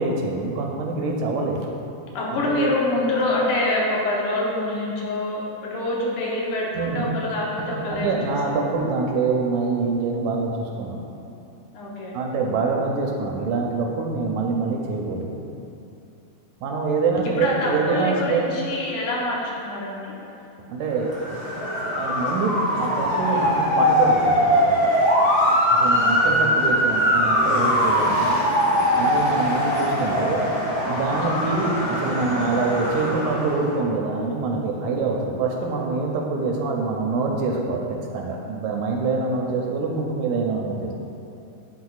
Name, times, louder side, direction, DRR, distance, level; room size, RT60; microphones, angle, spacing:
voice 1, 0.0-1.6 2.3-2.7 6.8-7.1 7.7-11.0 12.1-15.4 16.6-18.4 20.7-21.1 21.9-24.9 25.7-28.2 29.0-30.4 30.8-40.9, right 4 dB, 80° right, 0 dB, 1.9 m, -25 dB
voice 2, 2.1-8.7 11.7-12.1 17.2-20.2 25.8-26.1, left 1 dB, 75° left, -4 dB, 2.4 m, -26 dB
Motor vehicle (road) / Siren, 21.0-33.7, equal, 50° left, 0.8 m, -21 dB
11.0 x 4.0 x 2.4 m, 2.7 s
omnidirectional pair, 3.6 m